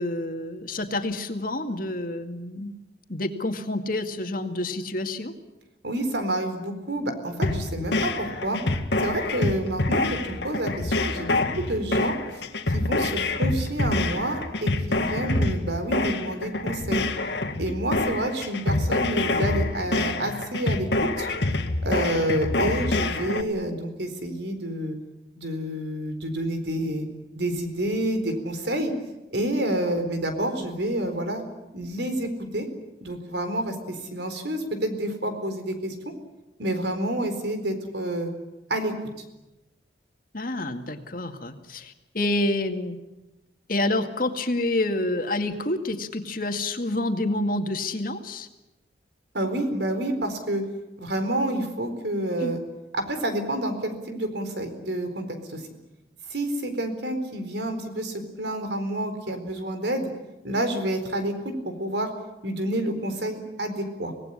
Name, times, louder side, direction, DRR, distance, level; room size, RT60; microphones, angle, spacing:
voice 1, 0.0-2.7 3.1-5.3 40.3-43.0 43.7-48.5 52.4-52.6, left 2 dB, 50° left, 6 dB, 2.1 m, -28 dB
voice 2, 5.8-8.6 9.0-12.1 12.7-17.1 17.6-21.3 21.8-25.0 25.4-27.1 27.3-28.9 29.3-31.4 31.7-32.7 33.0-35.9 36.6-38.3 38.7-38.9 49.3-50.6 51.0-52.6 52.9-55.6 56.3-60.1 60.4-62.1 62.4-64.1, right 1 dB, 75° right, 8 dB, 4.2 m, -28 dB
sound 1, 7.4-23.4, left 2 dB, 75° left, 2.0 m, -26 dB
25.5 x 18.5 x 9.9 m, 1.0 s
head